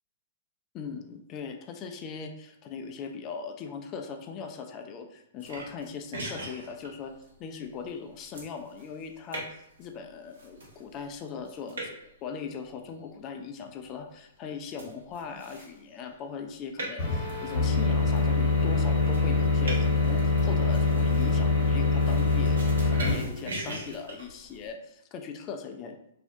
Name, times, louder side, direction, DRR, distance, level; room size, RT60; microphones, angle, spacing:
voice 1, 0.7-7.1 7.4-26.0, left 6 dB, 30° left, 5 dB, 0.3 m, -40 dB
sound 1, 5.4-24.7, right 1 dB, 70° right, 0.8 m, -43 dB
sound 2, 17.0-23.1, left 4 dB, 50° left, 1.1 m, -24 dB
2.4 x 2.0 x 2.6 m, 0.77 s
hypercardioid pair, 115°, 0 cm